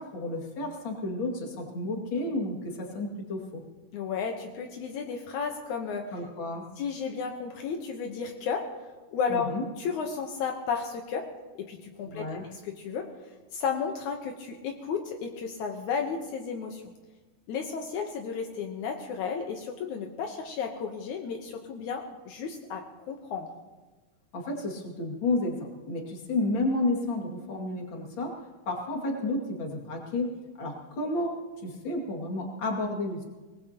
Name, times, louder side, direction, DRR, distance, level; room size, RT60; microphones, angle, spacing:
voice 1, 0.0-3.6 6.1-6.6 9.3-9.6 12.1-12.4 24.3-28.3 28.7-33.2, left 2 dB, 35° left, 0 dB, 2.1 m, -31 dB
voice 2, 3.9-6.1 6.8-8.7 9.1-9.5 9.8-11.3 11.6-13.1 13.5-16.8 17.5-23.5, left 6 dB, 85° left, 3 dB, 1.7 m, -33 dB
24.0 x 19.5 x 2.9 m, 1.2 s
omnidirectional pair, 5.0 m